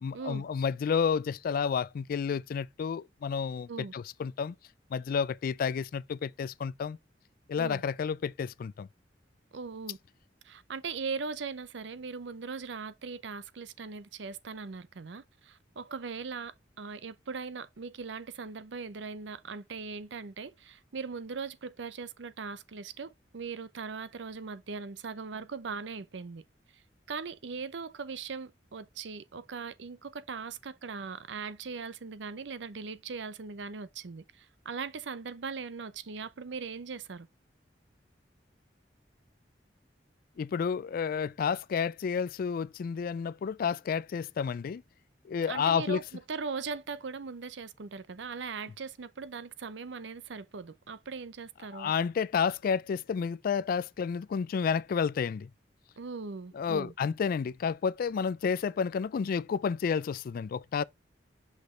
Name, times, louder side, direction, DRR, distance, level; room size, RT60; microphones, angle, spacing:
voice 1, 0.0-4.5 4.9-7.0 7.5-8.9 40.4-44.8 45.2-46.0 51.7-55.5 56.5-60.8, left 6 dB, 55° left, 0.3 m, -30 dB
voice 2, 9.5-10.0 10.4-26.4 27.1-37.3 45.5-51.9 56.0-56.9, right 5 dB, 75° right, 0.6 m, -40 dB
5.9 x 5.3 x 3.2 m
head